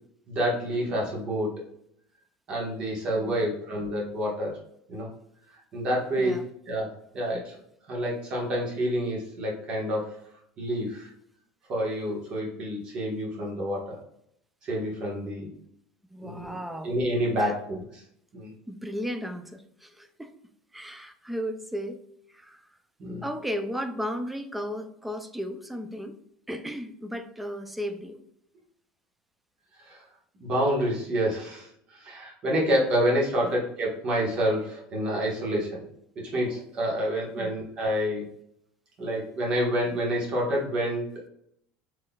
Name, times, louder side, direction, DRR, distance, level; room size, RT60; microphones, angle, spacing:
voice 1, 0.3-1.5 2.5-4.5 4.9-5.1 5.7-6.4 6.7-7.5 7.9-10.1 10.6-11.1 11.7-14.0 14.6-15.5 16.2-16.6 16.8-18.0 18.3-18.5 23.0-23.3 29.8-30.0 30.4-35.8 36.1-38.2 39.0-41.1, equal, 40° right, -3 dB, 1.4 m, -28 dB
voice 2, 16.1-16.9 17.4-17.5 18.7-20.3 20.7-22.0 22.3-22.6 23.2-26.2 26.5-28.2 33.4-33.5 37.4-37.5, equal, 5° right, 8 dB, 0.4 m, -35 dB
3.8 x 3.1 x 2.3 m, 0.72 s
supercardioid pair, 125°, 3 cm